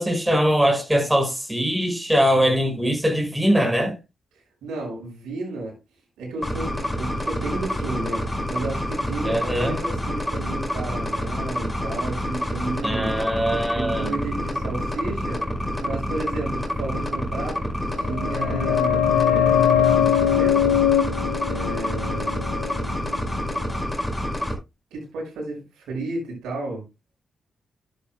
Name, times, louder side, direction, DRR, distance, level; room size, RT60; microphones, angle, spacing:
voice 1, 0.0-4.0 9.2-9.8 12.8-14.1, equal, 10° right, 5.0 m, -21 dB
voice 2, 4.6-5.7 6.2-13.1 13.7-15.4 15.8-17.7 18.0-20.8 21.4-22.4 24.9-26.8, right 2 dB, 80° right, 5.9 m, -32 dB
sound 1, 6.4-24.5, left 1 dB, 10° left, 5.1 m, -27 dB
sound 2, 17.9-23.4 23.6-23.7, left 9 dB, 85° left, 1.1 m, -22 dB
12.0 x 10.5 x 2.2 m
hypercardioid pair, 40°, 0 cm